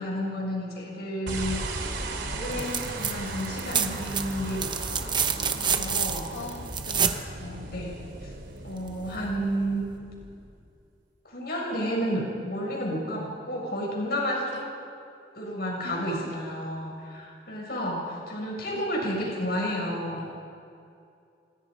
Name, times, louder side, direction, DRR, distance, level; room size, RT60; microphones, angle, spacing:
voice 1, 0.0-1.6 2.3-6.3 7.0-7.9 8.2-8.3 8.6-9.8 11.2-14.6 15.3-20.3, equal, 55° left, -1 dB, 6.5 m, -31 dB
sound 1, 1.3-10.7, right 2 dB, 75° right, 3.2 m, -36 dB
sound 2, 2.5-3.1 3.4-7.2 8.9-9.0, right 7 dB, 25° right, 1.0 m, -28 dB
voice 2, 6.3-7.5 14.5-14.6 15.8-16.3 18.7-18.9, left 3 dB, 75° left, 3 dB, 2.4 m, -43 dB
28.5 x 25.5 x 5.1 m, 2.5 s
head